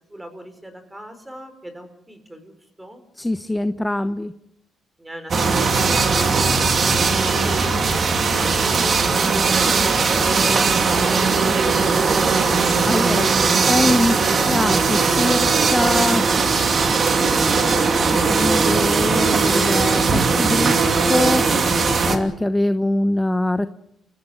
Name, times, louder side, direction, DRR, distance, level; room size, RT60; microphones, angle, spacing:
voice 1, 0.1-3.0 5.0-10.2, equal, 10° right, 9 dB, 5.3 m, -40 dB
voice 2, 3.2-4.3 12.9-13.3 13.7-14.2 14.5-16.4 17.1-20.8 21.1-21.5 22.0-23.7, left 1 dB, 10° left, 11 dB, 1.0 m, -23 dB
sound 1, 5.3-22.2, right 4 dB, 45° right, 2.8 m, -19 dB
29.5 x 16.0 x 8.0 m, 0.80 s
cardioid pair, 90°, 0 cm